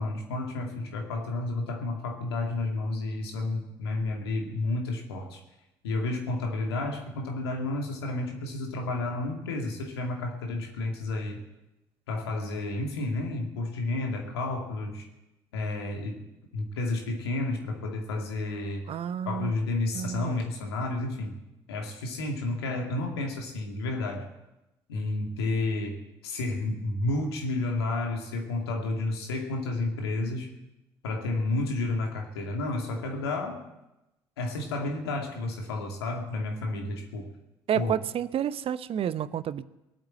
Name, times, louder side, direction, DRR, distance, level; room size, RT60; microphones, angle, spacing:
voice 1, 0.0-5.4 5.8-11.4 12.1-15.1 15.5-18.9 19.2-21.4 21.7-24.3 24.9-30.5 31.0-33.6 34.4-37.3 37.7-37.9, left 2 dB, 80° left, 2 dB, 2.4 m, -31 dB
voice 2, 18.9-19.5 19.9-20.4 37.7-39.6, right 9 dB, 45° right, 16 dB, 0.7 m, -30 dB
19.5 x 8.9 x 7.7 m, 0.94 s
figure-of-eight pair, 55°, 13 cm